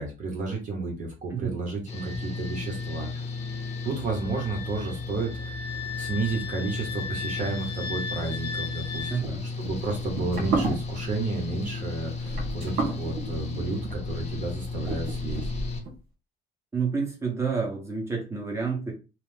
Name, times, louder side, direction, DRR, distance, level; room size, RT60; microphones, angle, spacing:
voice 1, 0.0-3.1 3.8-5.6 6.0-15.5, right 3 dB, 50° right, 0 dB, 0.9 m, -32 dB
Engine / Mechanical fan, 1.9-15.8, left 4 dB, 40° left, 0.8 m, -35 dB
Wind instrument woodwind instrument, 1.9-9.2, left 5 dB, 15° left, 1.0 m, -38 dB
sound 1, 8.9-15.9, right 2 dB, 70° right, 1.3 m, -33 dB
voice 2, 9.1-9.5 16.7-18.9, right 5 dB, 15° right, -1 dB, 1.1 m, -29 dB
2.9 x 2.1 x 3.3 m, 0.31 s
cardioid pair, 110°, 17 cm